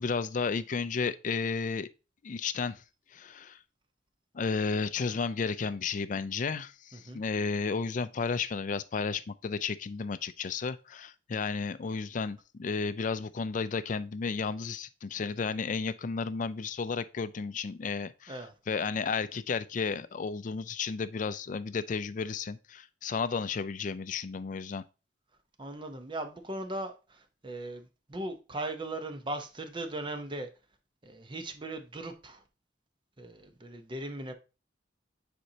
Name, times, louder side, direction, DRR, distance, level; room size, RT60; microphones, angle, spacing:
voice 1, 0.0-1.9 2.2-2.8 3.1-3.6 4.3-24.8, left 5 dB, 45° left, 0.4 m, -33 dB
voice 2, 6.9-7.2 18.3-18.5 25.6-30.5 31.0-32.4 33.2-34.3, right 1 dB, 25° right, 0.8 m, -38 dB
9.4 x 4.3 x 2.8 m
head